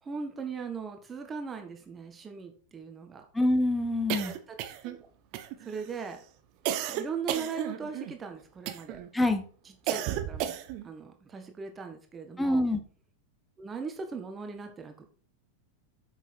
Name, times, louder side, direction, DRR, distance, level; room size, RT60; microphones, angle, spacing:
voice 1, 0.0-3.3 4.2-4.3 4.8-5.1 5.6-6.2 6.9-9.0 9.8-10.5 10.8-12.6 13.6-15.1, right 5 dB, 20° right, 5 dB, 1.7 m, -39 dB
voice 2, 3.3-4.3 9.1-9.4 12.4-12.8, left 1 dB, 5° left, 8 dB, 1.4 m, -25 dB
sound 1, 4.1-5.0 5.3-5.9 6.7-8.1 8.7-9.1 9.9-10.9, right 11 dB, 45° right, 1.0 m, -33 dB
9.0 x 6.4 x 4.7 m, 0.42 s
figure-of-eight pair, 90°, 0 cm